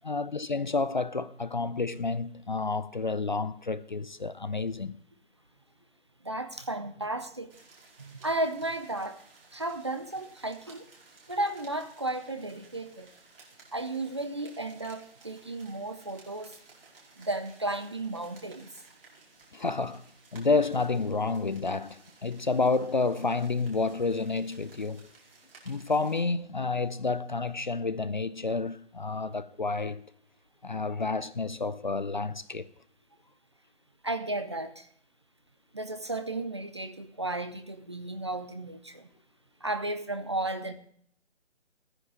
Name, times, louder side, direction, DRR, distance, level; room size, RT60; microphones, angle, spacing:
voice 1, 0.0-5.0 19.5-20.0 20.3-25.1 25.7-30.0 30.6-32.7, left 3 dB, 40° left, 0.5 m, -30 dB
voice 2, 6.2-7.5 8.0-9.2 9.5-10.9 11.3-13.1 13.7-16.6 17.2-18.7 34.0-34.9 35.7-39.1 39.6-40.7, right 2 dB, 25° right, 0.6 m, -34 dB
sound 1, 7.5-26.2, right 3 dB, 50° right, 4.8 m, -57 dB
14.5 x 9.8 x 4.8 m
figure-of-eight pair, 155°, 36 cm